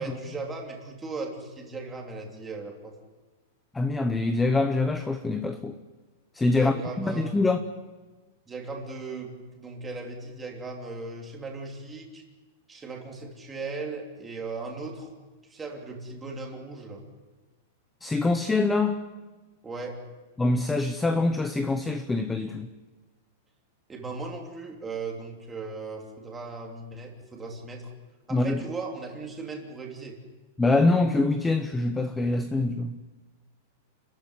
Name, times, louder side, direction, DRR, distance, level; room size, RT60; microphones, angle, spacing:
voice 1, 0.0-2.9 6.5-7.4 8.5-12.2 12.7-15.1 15.5-17.0 19.6-20.0 23.9-27.9 28.3-30.2, right 3 dB, 10° right, 0 dB, 3.1 m, -37 dB
voice 2, 3.7-5.8 6.3-7.6 18.0-19.0 20.4-22.7 28.3-28.6 30.6-33.0, left 2 dB, 5° left, 8 dB, 0.8 m, -24 dB
29.5 x 14.0 x 9.7 m, 1.3 s
supercardioid pair, 175°, 0 cm